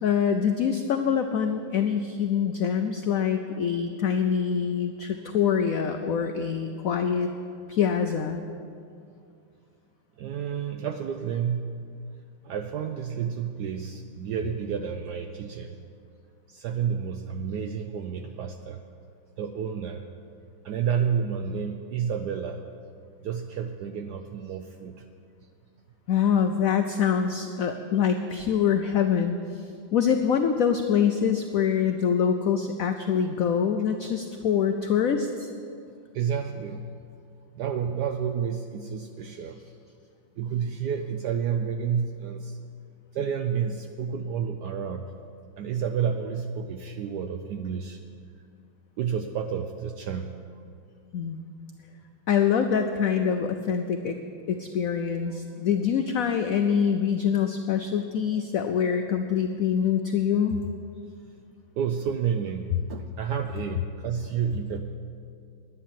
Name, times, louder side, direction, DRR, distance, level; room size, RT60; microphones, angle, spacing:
voice 1, 0.0-7.3 7.7-8.4 26.1-29.3 29.9-35.5 51.1-51.4 52.3-54.2 54.5-60.7, left 7 dB, 80° left, 6 dB, 0.7 m, -25 dB
voice 2, 10.2-11.8 12.4-15.8 16.5-18.8 19.4-20.1 20.6-22.6 23.2-25.1 36.1-36.9 37.6-39.6 40.4-42.6 43.1-45.1 45.6-48.0 49.0-50.4 61.8-64.8, right 7 dB, 75° right, 6 dB, 1.0 m, -30 dB
10.5 x 10.0 x 7.3 m, 2.4 s
omnidirectional pair, 2.1 m